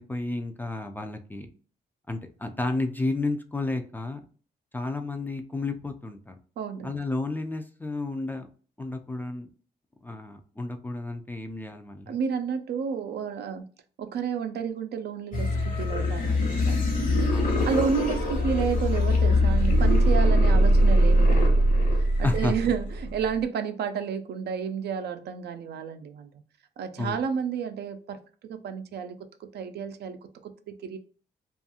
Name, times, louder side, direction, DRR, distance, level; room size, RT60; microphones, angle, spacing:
voice 1, 0.0-1.5 2.1-4.2 4.7-6.3 6.8-8.5 8.8-9.5 10.0-12.2 17.3-17.8 22.2-22.5 27.0-27.2, left 2 dB, 10° left, 0.3 m, -32 dB
voice 2, 6.6-7.0 12.1-13.6 14.0-21.7 22.2-26.3 26.8-31.0, right 6 dB, 70° right, 0.4 m, -31 dB
sound 1, 15.3-23.3, equal, 50° left, 0.9 m, -22 dB
2.6 x 2.4 x 2.7 m
cardioid pair, 105°, 18 cm